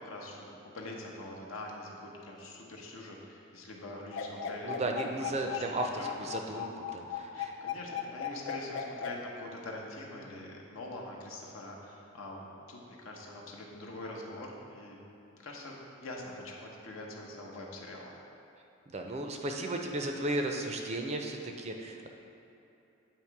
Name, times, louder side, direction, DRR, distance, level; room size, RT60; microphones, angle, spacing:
voice 1, 0.0-4.7 5.2-5.7 6.0-6.1 6.5-6.6 7.1-15.0 15.3-18.2, left 1 dB, 80° left, -2 dB, 0.9 m, -44 dB
sound 1, 4.1-9.1, left 8 dB, 60° left, 0.4 m, -36 dB
voice 2, 4.6-7.5 18.9-22.1, right 2 dB, 30° right, 3 dB, 0.4 m, -35 dB
8.4 x 3.0 x 4.6 m, 2.8 s
head